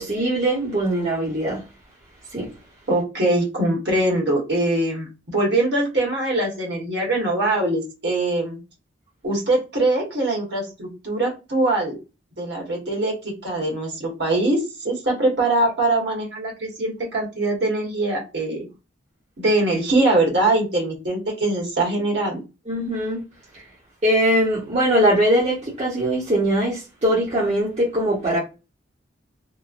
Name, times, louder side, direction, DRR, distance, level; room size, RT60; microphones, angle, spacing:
voice 1, 0.0-1.6 2.3-2.5 22.7-23.2 24.0-28.4, right 1 dB, 35° right, 0.9 m, -21 dB
voice 2, 2.9-8.6 9.2-12.0 12.4-14.6 14.8-18.7 19.4-22.4, right 2 dB, 60° right, 1.3 m, -22 dB
3.0 x 2.1 x 2.4 m
head